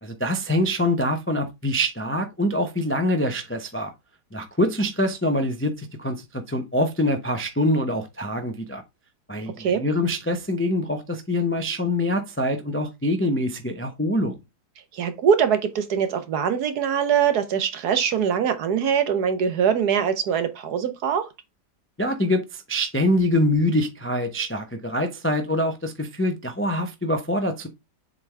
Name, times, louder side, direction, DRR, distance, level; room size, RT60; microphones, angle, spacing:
voice 1, 0.0-3.9 4.3-8.8 9.3-14.3 22.0-27.7, left 1 dB, 15° left, 0.4 m, -24 dB
voice 2, 14.9-21.3, right 7 dB, 65° right, 1.4 m, -22 dB
7.5 x 3.8 x 3.3 m
omnidirectional pair, 1.8 m